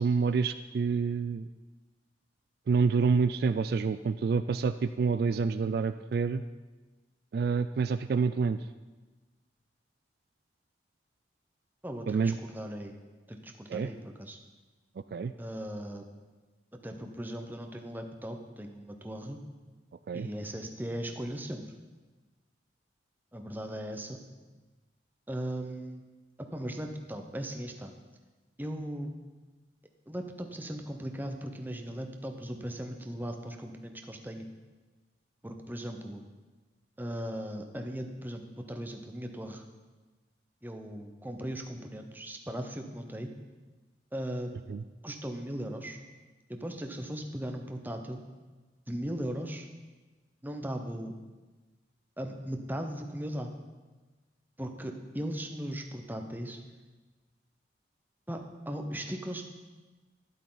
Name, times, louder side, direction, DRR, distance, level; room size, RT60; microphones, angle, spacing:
voice 1, 0.0-1.5 2.7-6.4 7.3-8.6 12.1-12.4 13.7-13.9 15.1-15.3 20.1-20.3 44.7-44.8, right 5 dB, 55° right, 11 dB, 0.3 m, -27 dB
voice 2, 11.8-13.0 13.3-14.4 15.4-16.0 16.8-19.4 20.1-21.6 23.3-24.2 25.3-26.0 26.5-27.9 28.6-29.1 30.1-34.5 35.4-36.2 37.0-39.6 40.6-43.3 44.1-44.5 45.0-46.0 46.5-48.2 48.9-49.7 50.4-51.1 52.2-53.5 54.6-56.6 58.3-58.4 58.7-59.4, equal, 10° right, 4 dB, 0.9 m, -38 dB
12.5 x 11.0 x 4.0 m, 1.3 s
head